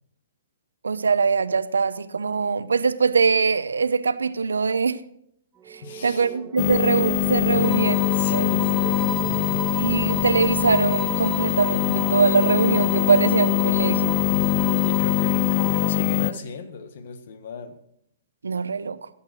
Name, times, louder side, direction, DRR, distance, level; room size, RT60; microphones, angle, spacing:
voice 1, 0.8-5.0 5.7-8.0 8.3-8.5 9.7-14.1 18.4-19.1, right 5 dB, 85° right, 0.8 m, -22 dB
sound 1, 5.6-16.4, right 9 dB, 20° right, 0.8 m, -37 dB
voice 2, 5.8-6.3 7.5-7.7 8.1-8.8 14.6-17.8, left 5 dB, 60° left, 1.6 m, -36 dB
sound 2, 6.6-16.3, left 20 dB, 40° left, 0.4 m, -23 dB
sound 3, 7.6-16.0, right 3 dB, 5° left, 4.7 m, -35 dB
15.5 x 8.7 x 6.3 m
hypercardioid pair, 125°, 0 cm